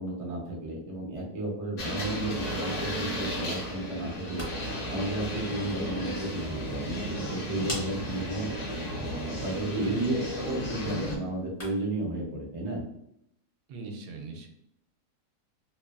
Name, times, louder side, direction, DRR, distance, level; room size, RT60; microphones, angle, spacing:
voice 1, 0.0-4.5 4.8-8.8 9.2-12.8, right 2 dB, 60° right, -2 dB, 0.3 m, -33 dB
sound 1, 1.8-11.2, equal, 60° left, 0.9 m, -34 dB
sound 2, 4.1-12.0, equal, 20° left, 0.5 m, -46 dB
voice 2, 9.7-10.2 13.7-14.5, right 3 dB, 80° right, 3 dB, 1.1 m, -39 dB
2.9 x 2.2 x 2.3 m, 0.76 s
omnidirectional pair, 1.7 m